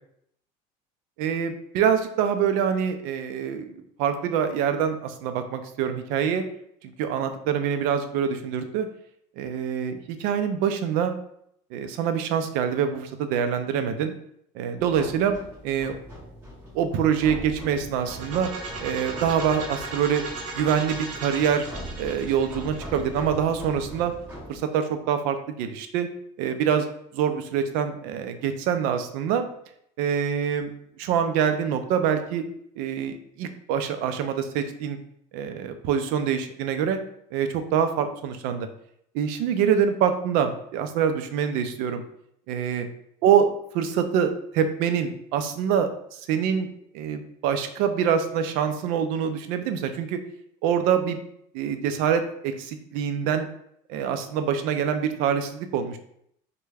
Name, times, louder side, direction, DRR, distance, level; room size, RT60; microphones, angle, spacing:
voice 1, 1.2-6.4 7.0-8.9 9.4-11.2 11.7-14.1 14.5-15.4 15.6-16.0 16.7-18.5 18.8-20.2 20.5-21.7 22.0-24.1 24.5-26.1 26.4-26.9 27.1-29.5 30.0-32.4 32.8-35.0 35.3-37.0 37.3-38.7 39.1-42.0 42.5-42.9 43.2-46.7 46.9-50.2 50.6-51.2 51.5-53.5 53.9-56.0, right 8 dB, 65° right, 8 dB, 0.4 m, -25 dB
sound 1, 14.8-24.6, equal, 15° right, 1.4 m, -41 dB
sound 2, 18.0-23.8, right 3 dB, 50° right, 0.8 m, -37 dB
3.3 x 2.2 x 3.3 m, 0.71 s
cardioid pair, 150°, 16 cm